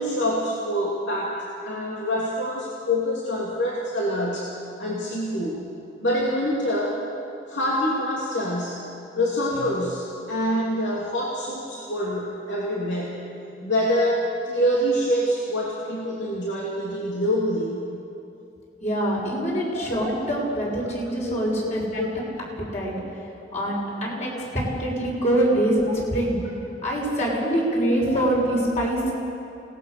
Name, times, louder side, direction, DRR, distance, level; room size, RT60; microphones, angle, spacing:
voice 1, 0.0-1.4 1.6-4.5 4.8-5.6 6.0-7.0 7.5-8.9 9.1-13.3 13.6-17.9 19.7-19.9 21.2-21.4 21.6-21.7 22.0-22.2 28.1-28.2, equal, 90° left, -4 dB, 2.9 m, -26 dB
voice 2, 18.8-22.0 22.6-23.0 23.5-26.4 26.8-29.1, right 1 dB, 40° left, -3 dB, 6.5 m, -24 dB
28.0 x 19.0 x 6.8 m, 2.7 s
head